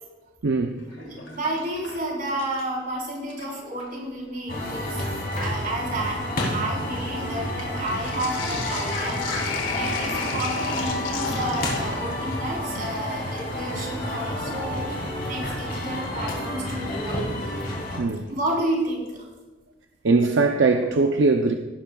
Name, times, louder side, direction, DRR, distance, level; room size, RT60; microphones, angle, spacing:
voice 1, 0.4-0.8 18.0-18.3 20.0-21.5, right 3 dB, 75° right, 5 dB, 0.6 m, -20 dB
Sink (filling or washing), 0.8-2.8 3.2-4.0 4.8-4.9 5.2-14.3 16.0-16.1 17.9-18.4 18.7-18.8 19.1-19.2, left 4 dB, 80° left, 2.0 m, -36 dB
voice 2, 1.0-9.3 9.7-17.2 18.3-19.2, right 1 dB, 50° right, -3 dB, 4.1 m, -31 dB
sound 1, 4.5-18.0, left 1 dB, 50° left, 3.4 m, -30 dB
sound 2, 4.9-16.0, right 5 dB, 10° left, 3.3 m, -44 dB
17.5 x 11.5 x 2.4 m, 1.2 s
head